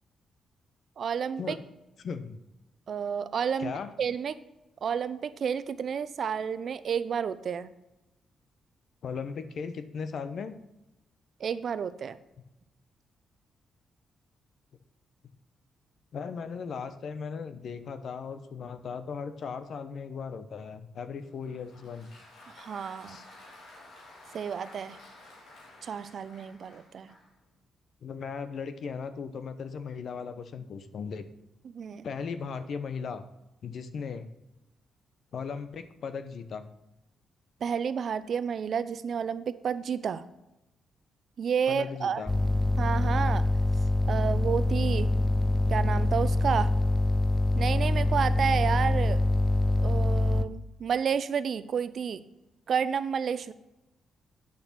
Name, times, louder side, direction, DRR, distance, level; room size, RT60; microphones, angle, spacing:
voice 1, 1.0-1.6 2.9-3.7 4.0-4.4 4.8-7.7 11.4-12.2 22.5-23.2 24.3-25.0 25.8-27.1 31.6-32.1 37.6-40.3 41.4-42.2 42.8-43.4 44.1-45.1 45.7-46.7 47.5-49.2 49.8-52.2 52.7-53.5, right 7 dB, 65° right, 13 dB, 0.6 m, -30 dB
voice 2, 2.0-2.4 3.6-3.9 9.0-10.5 16.1-22.1 23.1-23.2 28.0-31.2 32.0-33.2 33.6-34.3 35.3-36.7 41.7-42.3, left 6 dB, 65° left, 10 dB, 0.9 m, -37 dB
Applause, 21.2-27.4, left 2 dB, 85° left, 3.0 m, -52 dB
sound 1, 42.3-50.5, left 2 dB, 15° left, 0.7 m, -25 dB
8.6 x 6.6 x 5.9 m, 0.95 s
supercardioid pair, 60°, 0 cm